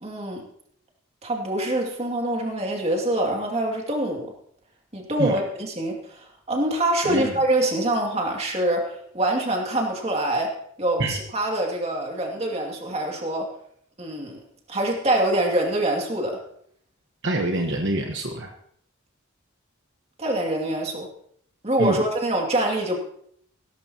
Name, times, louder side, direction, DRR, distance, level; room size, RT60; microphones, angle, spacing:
voice 1, 0.0-0.4 1.2-4.3 4.9-10.5 10.8-13.5 14.0-14.4 14.7-16.4 20.2-21.1 21.6-23.0, right 1 dB, 30° right, 1 dB, 2.5 m, -25 dB
voice 2, 17.2-18.5 21.8-22.0, right 1 dB, 60° right, 3 dB, 1.2 m, -26 dB
16.5 x 13.5 x 2.9 m, 0.67 s
head